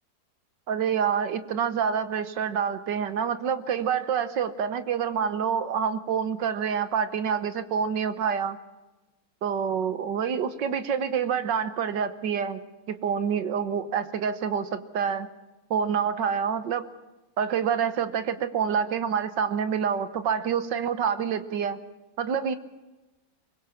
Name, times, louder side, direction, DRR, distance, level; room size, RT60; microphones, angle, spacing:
voice 1, 0.7-8.6 9.4-12.6 12.9-15.3 15.7-16.9 17.4-21.8 22.2-22.5, right 7 dB, 80° right, 11 dB, 1.8 m, -27 dB
24.0 x 21.0 x 7.2 m, 1.1 s
omnidirectional pair, 1.9 m